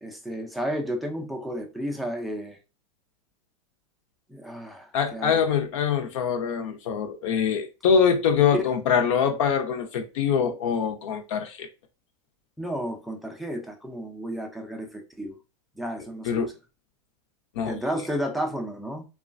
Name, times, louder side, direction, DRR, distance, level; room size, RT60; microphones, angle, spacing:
voice 1, 0.0-2.6 4.3-5.4 12.6-15.4 15.8-16.5 17.7-19.1, equal, ahead, 0.4 m, -32 dB
voice 2, 4.9-11.7 16.3-16.5 17.6-17.7, left 7 dB, 60° left, 0.7 m, -24 dB
2.9 x 2.3 x 2.5 m
supercardioid pair, 145°, 18 cm